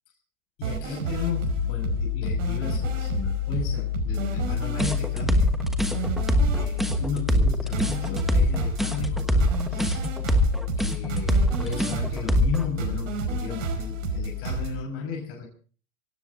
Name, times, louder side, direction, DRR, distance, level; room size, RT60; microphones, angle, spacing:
voice 1, 0.6-5.5 6.0-6.1 6.6-10.0 10.8-15.5, left 5 dB, 35° left, 0 dB, 6.2 m, -35 dB
sound 1, 0.6-14.7, right 6 dB, 70° right, 5.4 m, -31 dB
sound 2, 1.2-14.8, left 15 dB, 60° left, 4.8 m, -31 dB
sound 3, 4.8-12.7, equal, ahead, 1.2 m, -23 dB
26.0 x 17.0 x 2.7 m, 0.39 s
hypercardioid pair, 135°, 40 cm